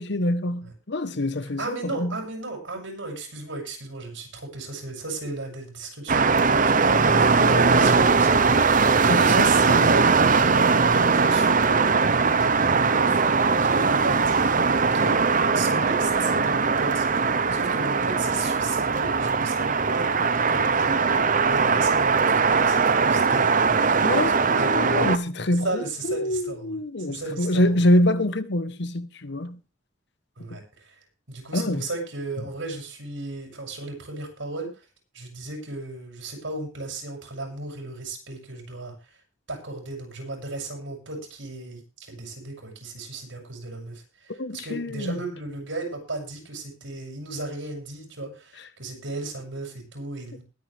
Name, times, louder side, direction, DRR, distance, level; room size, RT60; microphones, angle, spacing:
voice 1, 0.0-2.2 9.1-9.5 24.0-29.6 31.5-31.9 44.4-45.2, left 1 dB, 65° left, 1.1 m, -25 dB
voice 2, 1.6-13.2 13.6-15.2 15.5-17.1 17.5-23.5 24.2-24.7 25.6-26.8 27.1-27.9 30.4-31.0 31.3-34.7 35.1-39.0 39.5-41.8 42.1-50.4, right 2 dB, 85° right, 6.9 m, -35 dB
sound 1, 6.1-25.2, right 4 dB, 45° right, 0.8 m, -20 dB
21.0 x 9.5 x 3.4 m
head